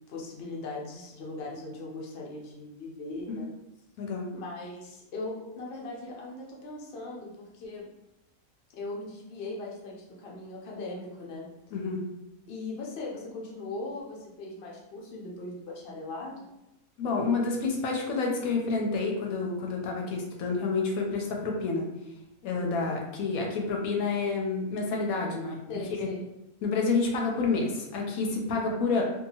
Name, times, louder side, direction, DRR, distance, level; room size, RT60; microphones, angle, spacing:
voice 1, 0.1-3.5 4.3-7.9 8.7-11.5 12.5-16.5 22.5-22.9 25.7-26.3 28.5-28.8, left 2 dB, 55° left, -2 dB, 0.8 m, -39 dB
voice 2, 11.7-12.0 17.0-21.9 22.4-25.6 26.0-26.1 26.6-29.0, left 4 dB, 80° left, 0 dB, 1.0 m, -29 dB
2.7 x 2.4 x 2.7 m, 0.89 s
omnidirectional pair, 1.5 m